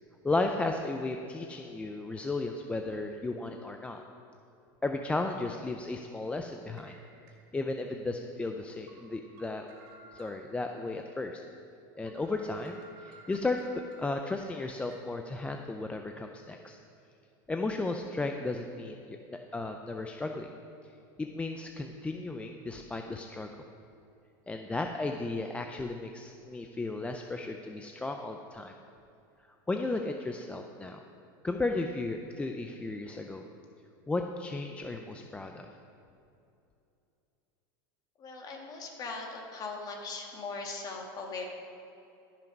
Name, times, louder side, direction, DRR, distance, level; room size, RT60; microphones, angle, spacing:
voice 1, 0.2-4.0 4.8-7.0 7.5-9.7 10.1-11.4 12.0-16.8 17.5-20.5 21.2-23.5 24.5-28.7 29.7-31.0 31.4-33.4 34.1-35.7, left 2 dB, 10° left, 4 dB, 0.4 m, -34 dB
sound 1, 3.2-3.4 3.9-4.0 5.2-5.3 6.8-7.8 8.3-8.4 8.9-10.8 11.2-11.3 11.7-11.8 12.1-15.0, right 2 dB, 65° right, 2.3 m, -56 dB
voice 2, 38.2-41.4, left 3 dB, 35° left, 1 dB, 1.9 m, -39 dB
13.5 x 5.9 x 5.3 m, 2.7 s
supercardioid pair, 125°, 12 cm